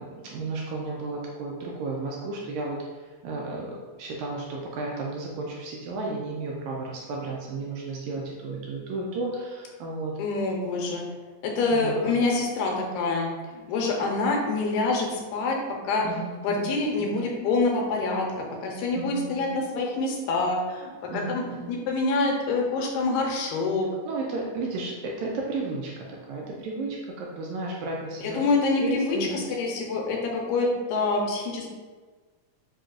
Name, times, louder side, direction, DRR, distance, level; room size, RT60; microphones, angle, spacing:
voice 1, 0.0-10.2 11.7-12.2 16.0-16.7 18.9-19.6 21.1-21.7 24.0-28.5 28.8-29.4, right 3 dB, 80° right, -2 dB, 1.7 m, -33 dB
voice 2, 10.2-11.0 11.4-15.6 15.8-16.1 16.4-20.9 21.3-21.4 21.7-23.9 28.2-29.2 29.6-31.7, left 3 dB, 90° left, 0 dB, 2.1 m, -26 dB
5.3 x 2.8 x 2.4 m, 1.4 s
omnidirectional pair, 3.6 m